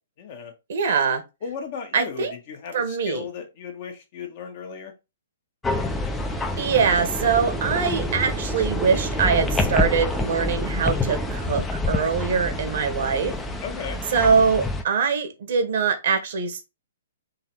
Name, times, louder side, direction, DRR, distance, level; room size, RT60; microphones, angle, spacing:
voice 1, 0.2-0.5 1.4-4.9 13.6-14.0, left 6 dB, 50° left, 1.4 m, -36 dB
voice 2, 0.7-1.2 1.9-2.3 2.7-3.2 6.6-13.3 14.1-16.6, right 6 dB, 60° right, 1.2 m, -23 dB
sound 1, 5.6-14.8, left 2 dB, 10° left, 0.6 m, -28 dB
sound 2, 5.6-13.6, right 3 dB, 10° right, 1.0 m, -34 dB
3.9 x 2.8 x 4.6 m
hypercardioid pair, 130°, 0 cm